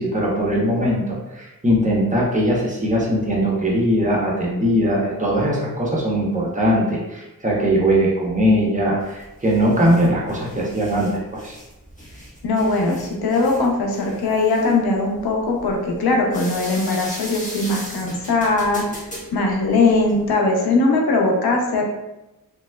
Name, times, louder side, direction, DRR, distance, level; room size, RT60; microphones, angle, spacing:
voice 1, 0.0-11.6, equal, 20° right, -4 dB, 0.9 m, -20 dB
sound 1, 9.0-20.3, equal, 20° left, 1.3 m, -38 dB
voice 2, 12.4-19.0 19.3-21.8, left 3 dB, 80° left, 1 dB, 0.7 m, -20 dB
3.3 x 2.9 x 2.2 m, 0.95 s
cardioid pair, 70°, 36 cm